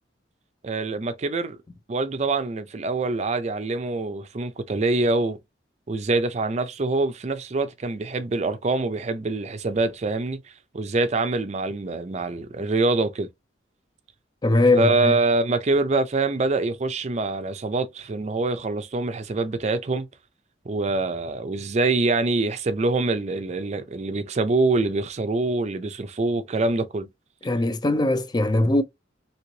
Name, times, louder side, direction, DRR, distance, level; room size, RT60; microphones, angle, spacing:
voice 1, 0.6-1.6 1.9-5.4 5.9-10.4 10.7-13.3 14.7-20.1 20.7-27.1, right 3 dB, 35° right, 0.5 m, -25 dB
voice 2, 14.4-15.2 27.4-28.8, left 2 dB, 20° left, 0.4 m, -20 dB
3.1 x 2.9 x 2.8 m
head